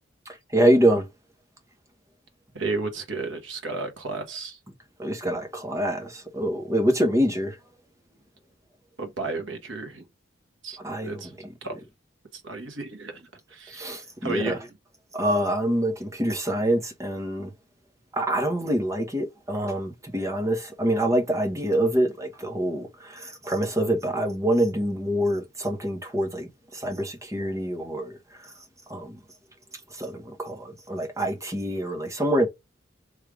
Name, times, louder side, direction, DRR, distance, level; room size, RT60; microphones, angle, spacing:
voice 1, 0.3-1.1 5.0-7.6 10.8-11.8 13.7-14.6 15.1-17.5 18.1-28.5 28.9-29.2 29.9-32.5, right 1 dB, 15° right, 1.0 m, -26 dB
voice 2, 2.5-4.6 9.0-10.0 10.6-11.3 11.6-11.8 12.3-14.6, right 3 dB, 70° right, 1.2 m, -33 dB
3.3 x 3.3 x 4.8 m
head